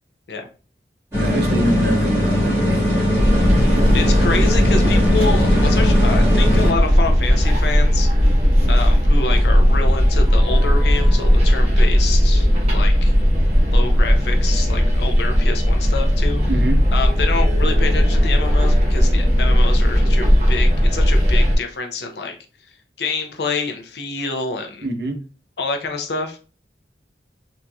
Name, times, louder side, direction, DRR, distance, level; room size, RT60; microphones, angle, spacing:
sound 1, 1.1-6.7, equal, 15° right, 1.6 m, -19 dB
voice 1, 1.1-2.9 3.9-4.3 16.5-16.8 24.8-25.2, right 1 dB, 65° right, 3 dB, 0.8 m, -25 dB
sound 2, 3.1-21.6, equal, 35° right, 1.1 m, -16 dB
voice 2, 3.9-8.1 8.7-12.5 12.7-13.1 13.7-16.4 16.9-22.4 23.0-24.9 25.6-26.4, left 4 dB, 75° left, 4 dB, 0.6 m, -27 dB
3.9 x 2.7 x 2.3 m, 0.36 s
head